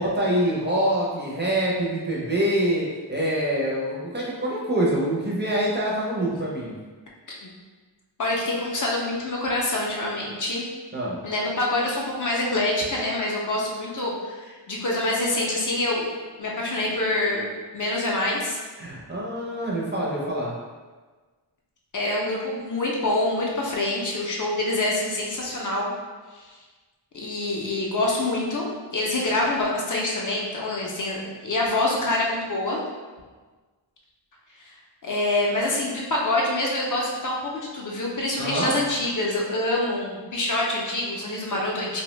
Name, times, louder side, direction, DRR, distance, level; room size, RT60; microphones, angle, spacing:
voice 1, 0.0-6.8 10.9-11.2 18.8-20.5 38.4-38.7, right 1 dB, 25° right, -5 dB, 0.4 m, -25 dB
voice 2, 8.2-10.6 11.2-16.1 16.4-18.6 21.9-25.9 26.3-26.6 27.1-32.8 34.6-34.7 35.0-42.0, left 2 dB, 45° left, -3 dB, 0.4 m, -26 dB
2.6 x 2.0 x 3.0 m, 1.4 s
wide cardioid pair, 140°, 44 cm